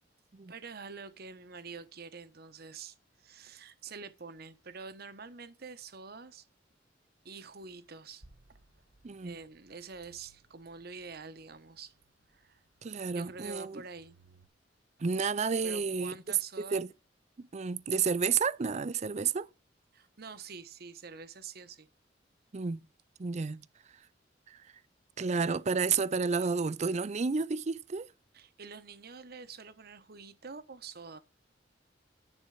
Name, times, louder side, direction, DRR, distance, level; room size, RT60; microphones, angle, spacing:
voice 1, 0.5-6.5 7.2-8.2 8.5-8.6 9.2-11.9 12.3-12.6 13.1-14.2 15.6-16.8 19.9-21.9 28.3-31.2, right 4 dB, 55° right, 1.0 m, -47 dB
sound 1, 7.6-14.5, right 2 dB, 75° right, 1.5 m, -65 dB
voice 2, 9.0-9.4 12.8-13.8 15.0-16.1 16.6-16.9 17.5-19.5 22.5-22.9 23.2-23.6 24.5-24.6 25.2-28.1, right 5 dB, 40° right, 0.5 m, -31 dB
10.0 x 4.4 x 6.4 m
head